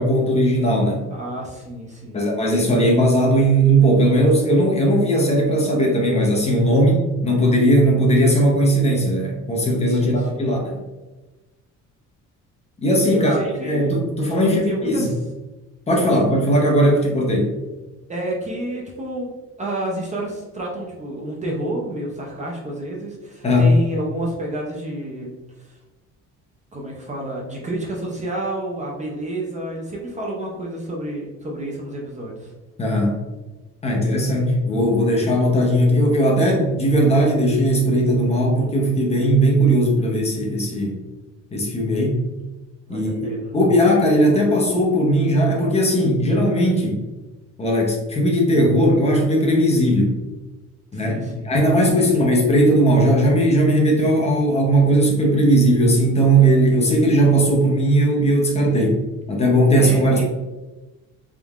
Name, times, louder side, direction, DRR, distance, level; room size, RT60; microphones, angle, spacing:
voice 1, 0.0-1.0 2.1-10.8 12.8-15.1 15.9-17.5 23.4-23.7 32.8-33.1 33.8-41.0 41.5-42.2 42.9-47.0 47.6-50.2 50.9-59.0 59.3-60.2, right 1 dB, 20° left, -1 dB, 0.7 m, -18 dB
voice 2, 1.1-2.2 9.9-10.5 13.1-13.9 14.4-15.1 16.0-16.1 18.1-19.3 19.6-25.3 25.6-25.8 26.7-32.5 42.9-43.5 50.9-51.5 52.0-52.3 59.8-60.2, right 1 dB, 25° right, -2 dB, 0.6 m, -29 dB
4.0 x 3.6 x 2.4 m, 1.1 s
cardioid pair, 155°, 31 cm